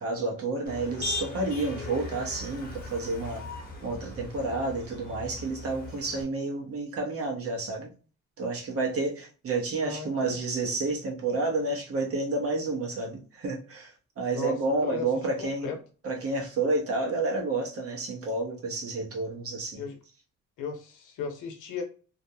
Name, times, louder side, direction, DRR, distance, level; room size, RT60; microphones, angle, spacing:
voice 1, 0.0-3.4 3.8-7.9 8.4-15.7 16.0-19.8, right 3 dB, 50° right, 0.9 m, -30 dB
Motor vehicle (road), 0.7-6.2, left 3 dB, 30° left, 1.0 m, -39 dB
voice 2, 9.8-10.4 14.3-14.6 14.8-15.1 15.4-15.8 19.8-20.0 20.6-21.8, left 6 dB, 85° left, 0.7 m, -35 dB
2.5 x 2.1 x 2.7 m
cardioid pair, 90°, 30 cm